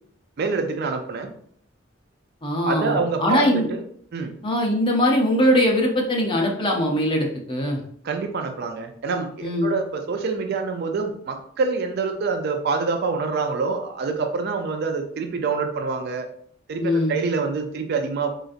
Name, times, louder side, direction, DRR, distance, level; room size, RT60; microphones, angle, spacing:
voice 1, 0.4-1.3 2.6-3.8 4.1-4.3 8.0-16.3 16.7-18.4, right 4 dB, 50° right, 6 dB, 0.4 m, -26 dB
voice 2, 2.4-3.7 4.4-7.8 9.4-9.7 16.8-17.2, left 1 dB, 25° left, 0 dB, 0.6 m, -21 dB
3.9 x 2.5 x 2.4 m, 0.63 s
head